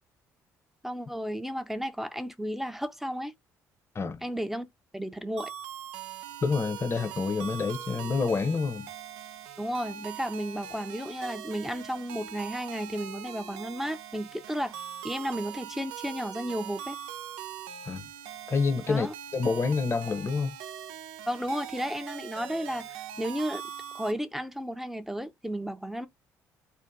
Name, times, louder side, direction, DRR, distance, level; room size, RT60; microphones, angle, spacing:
voice 1, 0.8-3.3 4.2-4.7 4.9-5.5 9.6-14.8 15.0-17.0 18.9-19.1 21.3-23.6 23.9-26.1, equal, 5° right, 0.6 m, -33 dB
sound 1, 5.4-24.1, right 9 dB, 80° right, 0.4 m, -42 dB
voice 2, 6.4-8.9 17.8-18.1 18.5-19.1 19.3-20.5, left 4 dB, 35° left, 0.7 m, -28 dB
2.7 x 2.4 x 3.5 m
hypercardioid pair, 60°, 8 cm